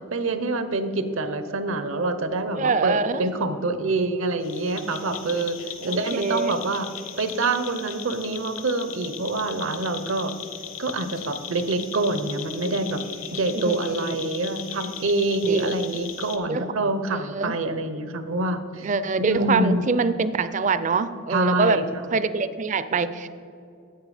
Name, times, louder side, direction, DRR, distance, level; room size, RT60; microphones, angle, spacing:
voice 1, 0.1-6.9 7.2-10.3 10.8-13.0 13.3-18.9 19.2-19.8 21.3-21.8, right 2 dB, 70° right, 10 dB, 0.7 m, -26 dB
voice 2, 2.5-3.3 5.8-6.5 13.6-14.5 15.5-16.0 16.5-16.7 17.3-17.6 18.8-21.8 22.1-23.3, right 4 dB, 35° right, 14 dB, 0.4 m, -25 dB
sound 1, 4.4-16.4, left 9 dB, 70° left, 0.9 m, -38 dB
10.5 x 8.4 x 4.9 m, 2.5 s
head